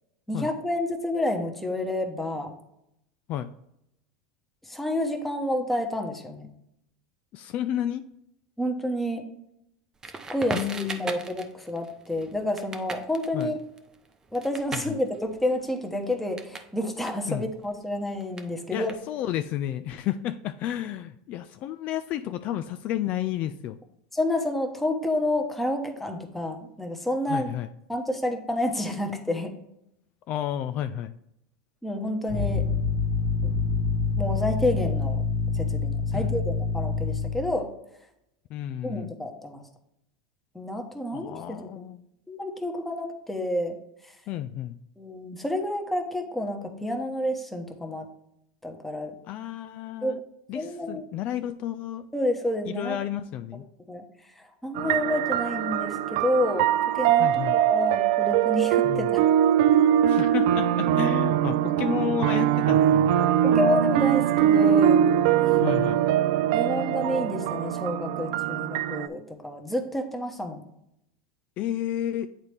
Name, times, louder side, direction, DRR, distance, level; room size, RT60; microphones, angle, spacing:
voice 1, 0.3-2.5 4.7-6.5 8.6-9.2 10.3-13.6 14.3-18.9 24.1-27.5 27.9-29.5 31.8-32.6 33.4-33.5 34.2-35.2 35.5-37.7 38.8-39.6 40.5-41.9 42.3-43.8 45.0-48.1 48.6-49.1 50.0-50.2 50.5-51.1 52.1-53.0 53.9-54.0 54.6-59.2 63.4-65.0 66.5-70.6, left 1 dB, 5° left, 4 dB, 1.1 m, -29 dB
voice 2, 7.3-8.0 10.5-11.1 13.3-13.5 14.7-15.0 17.3-17.5 18.7-23.8 27.3-27.7 30.3-31.1 36.1-36.4 38.5-39.1 41.1-42.0 44.3-44.8 49.3-50.2 50.5-52.1 52.7-53.6 57.2-57.6 58.8-59.1 60.1-63.2 65.6-66.0 71.6-72.3, left 11 dB, 45° left, 10 dB, 0.3 m, -31 dB
Crackle, 10.0-16.7 17.0-19.4, right 4 dB, 20° right, 0.7 m, -39 dB
sound 1, 32.3-37.6, left 4 dB, 65° left, 1.5 m, -26 dB
sound 2, 54.8-69.1, right 10 dB, 65° right, 0.3 m, -22 dB
8.7 x 4.1 x 3.4 m, 0.80 s
supercardioid pair, 115°, 3 cm